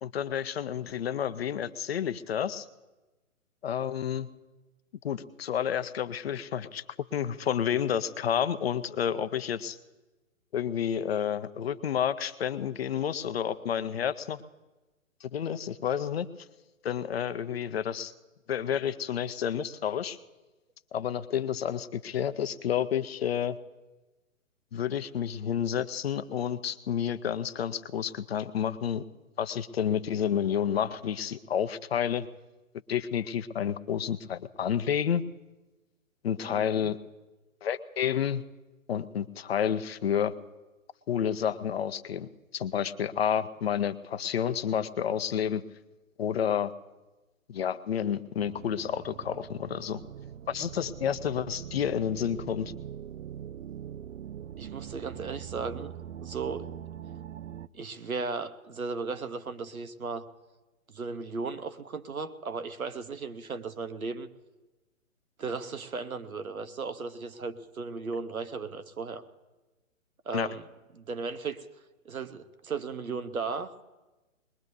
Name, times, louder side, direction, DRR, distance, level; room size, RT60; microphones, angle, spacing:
voice 1, 0.0-2.6 3.6-4.3 5.0-6.8 7.1-9.8 10.5-14.4 15.2-16.3 16.8-18.1 18.5-20.2 20.9-23.6 24.7-29.0 29.4-32.3 32.9-35.2 36.2-37.0 37.6-38.4 38.9-40.3 41.1-45.6 46.2-46.7 47.5-50.0 50.5-52.7 70.3-70.5, left 9 dB, 45° left, 14 dB, 0.7 m, -30 dB
voice 2, 36.4-36.9 54.6-55.9 56.2-56.7 57.7-60.3 60.9-64.3 65.4-69.2 70.2-70.6 70.9-71.7 72.0-73.7, right 4 dB, 90° right, 11 dB, 1.1 m, -36 dB
sound 1, 48.4-57.7, right 9 dB, 65° right, 0.5 m, -42 dB
21.5 x 21.0 x 2.7 m, 1.1 s
figure-of-eight pair, 135°, 41 cm